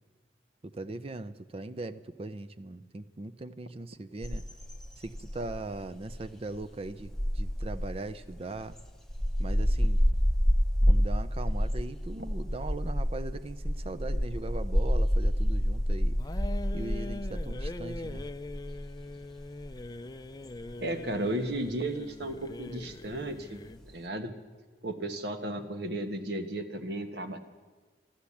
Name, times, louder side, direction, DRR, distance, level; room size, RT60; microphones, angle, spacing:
voice 1, 0.6-4.4 5.0-8.7 9.4-10.0 10.9-16.4 16.7-18.3, right 2 dB, 35° right, 11 dB, 0.5 m, -40 dB
sound 1, 4.2-24.0, equal, 5° left, 0.9 m, -29 dB
sound 2, 16.2-23.9, left 2 dB, 20° left, 0.4 m, -42 dB
voice 2, 20.8-23.6 23.9-24.4 24.8-27.4, right 1 dB, 75° right, 6 dB, 1.3 m, -34 dB
13.0 x 13.0 x 8.4 m, 1.4 s
head